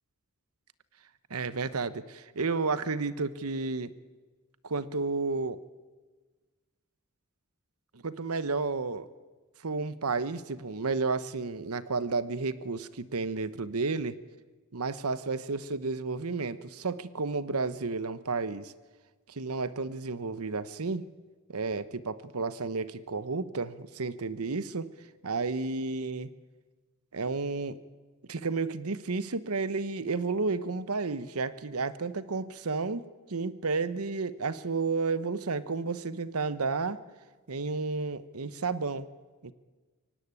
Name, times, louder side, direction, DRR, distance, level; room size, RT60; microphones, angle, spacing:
voice 1, 1.3-3.9 4.6-5.6 7.9-9.1 9.6-14.2 14.7-18.7 19.3-21.1 21.5-24.9 25.2-26.3 27.1-27.8 28.3-37.0 37.5-39.1 39.4-39.5, right 4 dB, 85° right, 15 dB, 1.0 m, -32 dB
23.5 x 17.5 x 9.7 m, 1.3 s
head